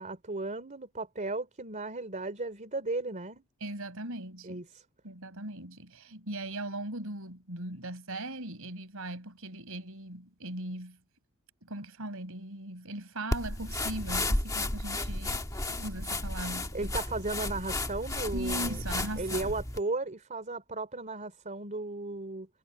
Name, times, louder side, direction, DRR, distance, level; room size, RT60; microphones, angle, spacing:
voice 1, 0.0-3.4 4.4-4.8 16.7-18.8 19.2-22.5, right 2 dB, 35° right, 3.1 m, -35 dB
voice 2, 3.6-4.6 5.0-11.0 11.6-16.9 18.3-19.5, right 1 dB, 70° right, 5.7 m, -39 dB
sound 1, 13.3-19.8, left 2 dB, 15° left, 1.6 m, -33 dB
head